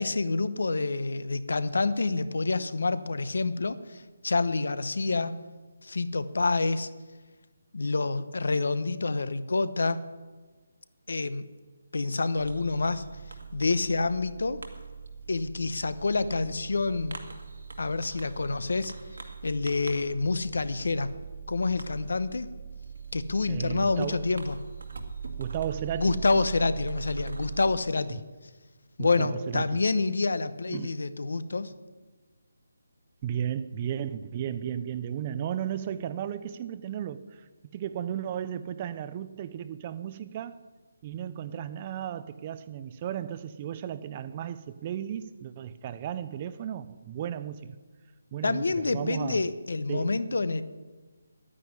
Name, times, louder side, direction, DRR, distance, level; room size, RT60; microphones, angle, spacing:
voice 1, 0.0-5.3 5.8-6.9 7.7-10.0 11.1-11.4 11.9-13.0 13.5-14.6 15.3-17.2 17.8-18.9 19.4-21.1 21.5-22.5 23.1-24.6 26.0-28.2 29.0-31.7 48.4-50.6, left 3 dB, 70° left, 0.9 m, -27 dB
Fireworks, 12.4-27.8, right 6 dB, 75° right, 1.9 m, -41 dB
voice 2, 23.5-24.2 25.4-26.2 29.0-29.8 30.7-30.9 33.2-40.6 41.0-47.7 48.3-49.4 49.9-50.2, right 9 dB, 20° right, 0.4 m, -34 dB
10.0 x 10.0 x 9.6 m
hypercardioid pair, 175°, 0 cm